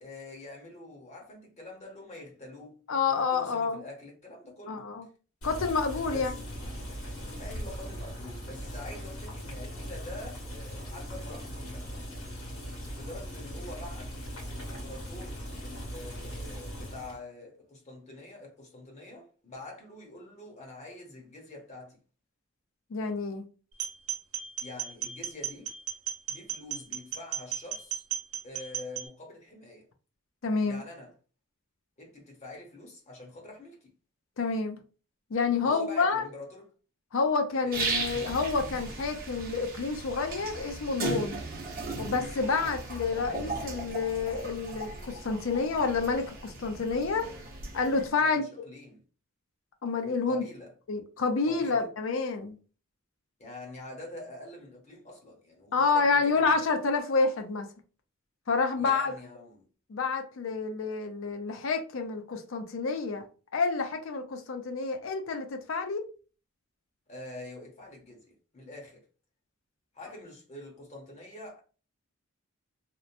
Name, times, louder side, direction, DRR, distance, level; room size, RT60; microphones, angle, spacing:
voice 1, 0.0-4.9 6.1-6.4 7.4-11.9 12.9-14.1 14.4-22.0 24.6-25.7 26.3-28.0 28.4-29.9 30.6-31.1 32.0-33.9 35.6-36.7 37.6-37.8 48.2-49.0 50.3-50.7 51.4-51.9 53.4-56.7 58.8-59.7 67.1-69.0 69.9-71.6, left 2 dB, 30° left, 0.7 m, -45 dB
voice 2, 2.9-3.8 4.7-5.1 5.4-6.3 22.9-23.4 30.4-30.8 34.4-34.8 35.3-36.3 37.1-41.4 42.0-47.3 47.7-48.4 49.8-50.4 50.9-52.6 55.7-57.7 58.5-59.1 59.9-63.3 63.5-66.1, left 4 dB, 65° left, 0.5 m, -28 dB
Boiling, 5.4-17.2, equal, 90° left, 1.4 m, -39 dB
sound 1, 23.7-29.1, right 9 dB, 85° right, 0.7 m, -36 dB
sound 2, 37.7-48.1, right 3 dB, 40° right, 0.7 m, -37 dB
2.9 x 2.0 x 2.5 m
head